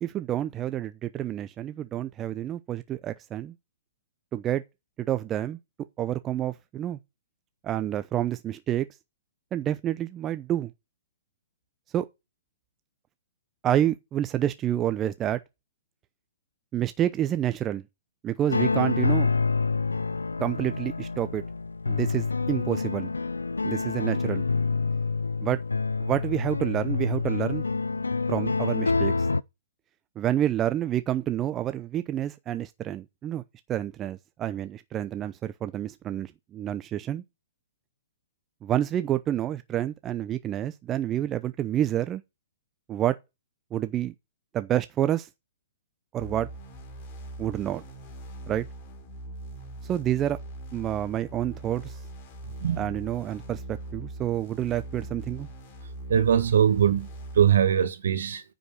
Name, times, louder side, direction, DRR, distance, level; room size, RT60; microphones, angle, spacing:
voice 1, 0.0-3.5 4.3-4.6 5.0-5.6 6.0-7.0 7.6-8.9 9.5-10.7 11.9-12.1 13.6-15.4 16.7-17.8 18.2-19.3 20.4-21.4 21.9-23.1 23.6-24.4 25.4-25.6 26.0-27.6 28.3-29.1 30.2-33.4 33.7-37.2 38.6-42.2 42.9-43.2 43.7-44.1 44.5-45.3 46.1-46.5 47.4-47.8 48.5-48.6 49.9-50.4 50.7-52.0 52.8-55.5, right 11 dB, 25° right, 0.6 m, -28 dB
sound 1, 18.5-29.4, left 4 dB, 85° left, 0.4 m, -27 dB
sound 2, 46.2-57.5, right 1 dB, 40° left, 3.3 m, -41 dB
voice 2, 56.1-57.1 57.3-58.4, right 9 dB, 65° right, 1.5 m, -21 dB
9.6 x 5.1 x 6.6 m
figure-of-eight pair, 120°, 0 cm